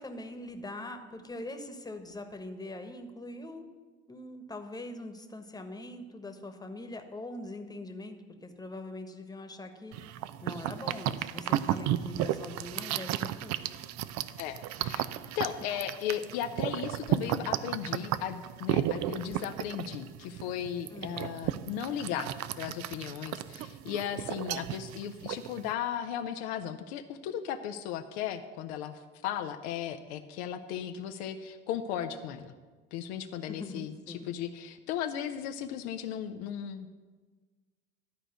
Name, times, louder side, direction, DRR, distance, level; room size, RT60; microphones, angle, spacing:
voice 1, 0.0-3.7 4.1-9.9 10.4-13.6 20.9-21.3 33.5-34.3, left 2 dB, 10° left, 6 dB, 1.3 m, -42 dB
sound 1, 9.9-25.7, right 12 dB, 50° right, 0.6 m, -34 dB
voice 2, 14.4-15.0 15.4-22.3 22.6-32.5 32.9-36.9, left 9 dB, 65° left, 7 dB, 0.7 m, -36 dB
12.0 x 4.9 x 8.0 m, 1.4 s
hypercardioid pair, 70°, 35 cm